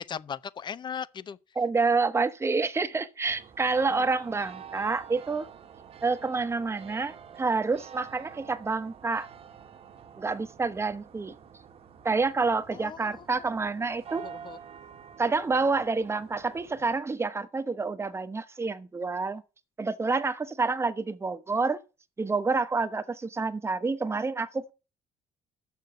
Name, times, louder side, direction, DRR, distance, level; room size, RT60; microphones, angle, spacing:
voice 1, 0.0-1.4 3.9-4.0 12.7-13.3 14.2-14.6, left 7 dB, 35° left, 0.6 m, -38 dB
voice 2, 1.5-5.5 6.0-9.3 10.2-11.3 12.0-14.3 15.2-19.4 19.8-21.8 22.2-24.7, right 4 dB, 20° right, 1.0 m, -28 dB
sound 1, 3.2-17.0, right 7 dB, 50° right, 1.2 m, -48 dB
6.9 x 6.4 x 7.8 m
cardioid pair, 105°, 13 cm